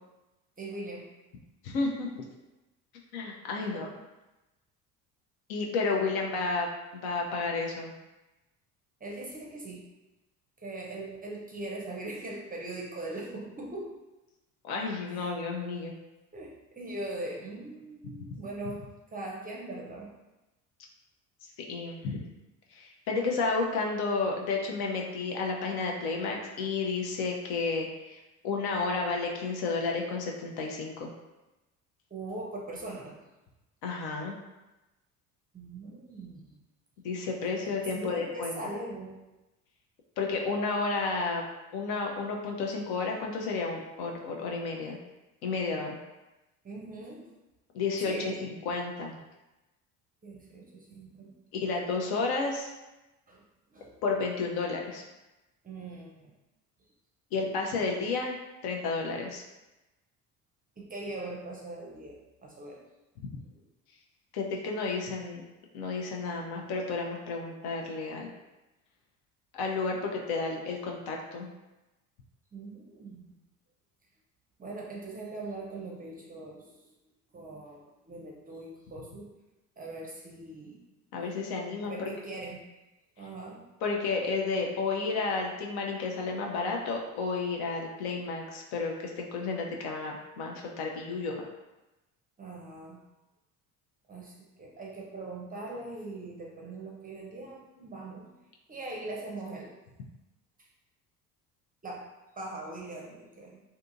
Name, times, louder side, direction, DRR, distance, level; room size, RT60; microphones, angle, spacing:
voice 1, 0.6-1.1 3.6-3.9 9.0-9.8 10.6-13.9 15.1-15.3 16.3-20.1 32.1-33.2 35.5-36.6 37.6-39.2 46.6-47.3 48.0-48.4 50.2-51.4 53.3-53.4 53.7-54.0 55.6-56.3 60.8-62.8 63.4-63.6 72.5-73.3 74.6-76.8 77.3-79.3 79.8-80.8 81.8-82.6 83.2-83.6 92.4-93.0 94.1-98.3 98.7-99.7 101.8-102.1 102.4-103.6, right 2 dB, 20° right, -2 dB, 0.6 m, -41 dB
voice 2, 1.6-2.2 3.1-3.9 5.5-6.7 6.9-7.9 14.6-15.9 21.7-22.2 22.7-28.2 28.4-31.1 33.8-34.3 37.0-38.6 40.2-41.4 41.7-45.0 45.4-46.0 47.7-48.1 48.4-49.2 51.5-52.7 54.0-55.0 57.3-58.4 58.6-59.4 64.3-65.4 65.7-68.3 69.5-71.5 81.1-82.1 83.8-91.4, left 4 dB, 55° left, 0 dB, 0.6 m, -31 dB
2.6 x 2.6 x 2.5 m, 1.0 s
hypercardioid pair, 60°, 46 cm